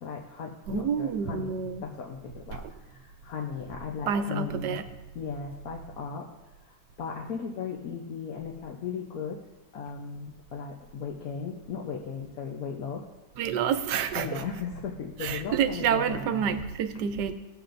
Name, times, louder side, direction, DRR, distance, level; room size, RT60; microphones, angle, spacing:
voice 1, 0.0-4.8 5.1-9.4 9.7-13.0 14.1-16.6, left 6 dB, 65° left, 1.2 m, -37 dB
voice 2, 0.7-1.8 4.1-4.8 13.4-14.4 15.2-17.3, right 7 dB, 85° right, 1.3 m, -28 dB
16.5 x 7.6 x 2.6 m
omnidirectional pair, 1.8 m